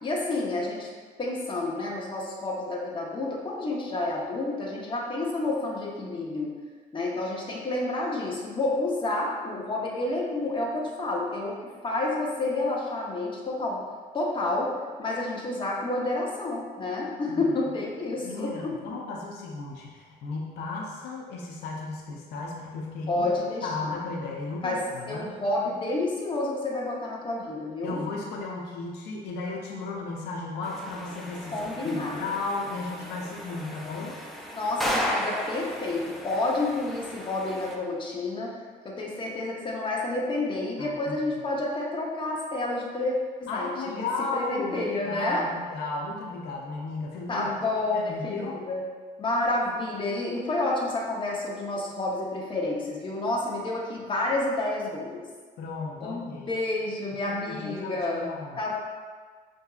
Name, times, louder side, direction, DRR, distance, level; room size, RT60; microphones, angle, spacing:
voice 1, 0.0-0.9 1.2-6.5 6.9-11.6 11.8-13.8 14.1-14.7 15.0-18.9 23.1-24.0 24.6-24.8 25.1-28.0 31.5-32.2 34.5-38.5 38.8-43.1 43.4-44.0 44.3-45.4 47.3-48.8 49.2-55.2 56.0-58.3 58.6-58.7, left 2 dB, 30° left, -3 dB, 0.8 m, -29 dB
voice 2, 18.2-23.3 23.6-25.3 27.8-34.2 40.8-41.2 43.5-48.6 55.6-56.5 57.3-58.6, left 3 dB, 80° left, -1 dB, 0.6 m, -35 dB
sound 1, 30.6-37.7, equal, ahead, 0.4 m, -35 dB
5.7 x 2.6 x 2.4 m, 1.5 s
cardioid pair, 110°, 17 cm